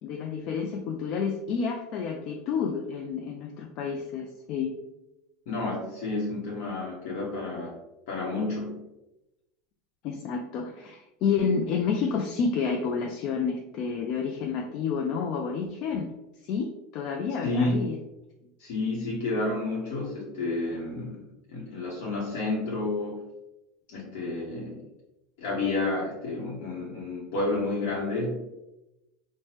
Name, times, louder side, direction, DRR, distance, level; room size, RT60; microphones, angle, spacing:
voice 1, 0.0-4.7 10.0-16.1 16.4-18.0, left 6 dB, 55° left, 3 dB, 0.3 m, -29 dB
voice 2, 5.5-7.8 8.1-8.8 17.4-17.9 18.6-23.2 23.9-24.8 25.4-28.4, left 2 dB, 70° left, -5 dB, 0.8 m, -30 dB
3.2 x 2.1 x 2.9 m, 0.96 s
supercardioid pair, 110°, 0 cm